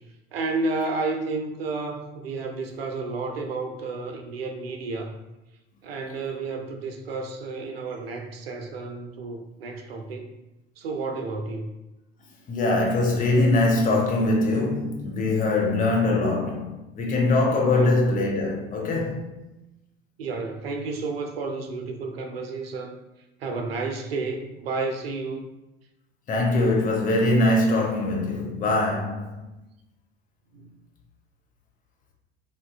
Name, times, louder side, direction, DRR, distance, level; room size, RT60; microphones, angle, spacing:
voice 1, 0.3-5.1 5.8-10.3 10.8-11.7 17.7-17.9 20.2-23.0 23.4-25.5 30.5-30.7, right 3 dB, 75° right, 0.5 m, -31 dB
voice 2, 12.5-19.3 26.3-29.4, left 2 dB, 25° left, 0.7 m, -22 dB
3.6 x 2.6 x 2.2 m
figure-of-eight pair, 70°, 31 cm